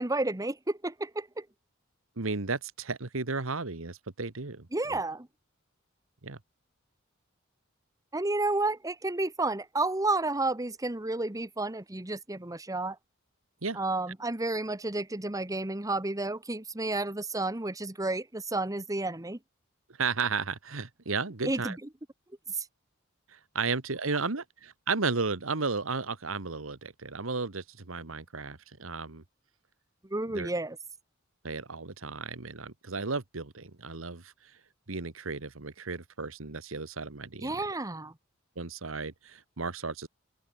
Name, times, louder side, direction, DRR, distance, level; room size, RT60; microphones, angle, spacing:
voice 1, 0.0-1.4 4.7-5.3 8.1-13.0 13.7-19.4 21.4-21.7 22.5-22.6 30.1-30.8 37.4-38.1, right 2 dB, 15° right, 1.2 m, -31 dB
voice 2, 2.2-5.0 6.2-6.4 13.6-13.8 20.0-21.8 23.3-29.2 30.3-30.5 31.4-34.6 34.9-37.7 38.5-40.1, right 4 dB, 85° right, 1.6 m, -34 dB
open air
head